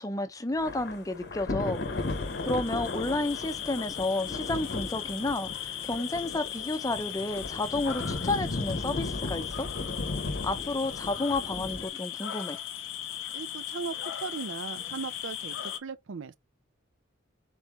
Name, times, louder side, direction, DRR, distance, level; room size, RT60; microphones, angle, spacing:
voice 1, 0.0-2.1 2.4-9.7 10.4-12.6, left 2 dB, 20° left, 0.6 m, -31 dB
Thunder / Rain, 0.6-11.9, left 2 dB, 60° left, 0.8 m, -36 dB
sound 1, 1.6-15.8, left 10 dB, 85° left, 0.5 m, -38 dB
voice 2, 13.3-16.4, right 5 dB, 85° right, 0.5 m, -38 dB
4.1 x 3.6 x 2.9 m
head